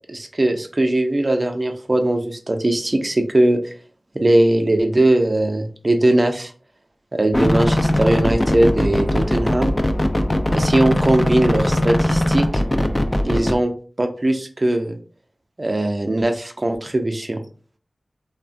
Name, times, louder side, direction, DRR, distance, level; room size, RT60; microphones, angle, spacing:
voice 1, 0.1-3.6 4.1-6.5 7.1-9.7 10.5-12.6 13.2-13.7 14.0-15.0 15.6-17.4, right 1 dB, 40° right, 5 dB, 0.5 m, -19 dB
sound 1, 7.3-13.5, left 1 dB, 25° left, 0.4 m, -20 dB
3.1 x 2.1 x 2.5 m, 0.41 s
wide cardioid pair, 55°, 0 cm